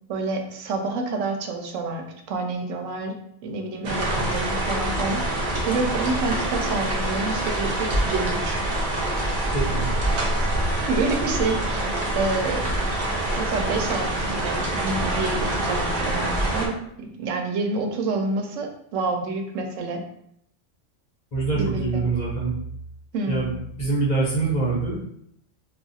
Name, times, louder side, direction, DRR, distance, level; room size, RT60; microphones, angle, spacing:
voice 1, 0.1-3.1 3.4-5.4 5.7-8.6 10.9-12.7 13.4-20.0 21.6-22.0 23.1-23.4, right 3 dB, 80° right, 4 dB, 0.9 m, -28 dB
sound 1, 3.8-16.7, right 1 dB, 45° right, 0.6 m, -25 dB
voice 2, 9.5-9.9 21.3-22.5 23.3-24.9, right 3 dB, 35° left, -5 dB, 0.9 m, -24 dB
2.4 x 2.4 x 3.9 m, 0.72 s
omnidirectional pair, 1.3 m